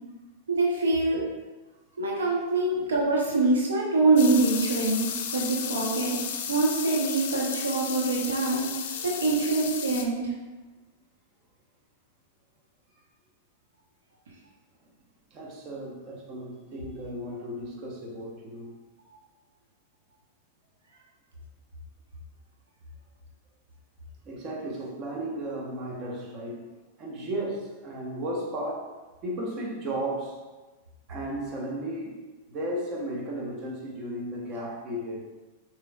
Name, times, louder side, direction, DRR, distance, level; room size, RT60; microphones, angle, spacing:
voice 1, 0.5-1.2 2.0-6.2 6.5-8.7 9.0-10.3, right 3 dB, 75° right, -3 dB, 0.9 m, -24 dB
sound 1, 4.2-10.0, left 8 dB, 60° left, 0.5 m, -34 dB
voice 2, 8.9-9.2 15.3-18.8 24.2-26.7 27.0-30.4 31.1-35.2, right 1 dB, 40° right, -2 dB, 1.1 m, -35 dB
6.6 x 3.2 x 2.4 m, 1.2 s
figure-of-eight pair, 95°, 0 cm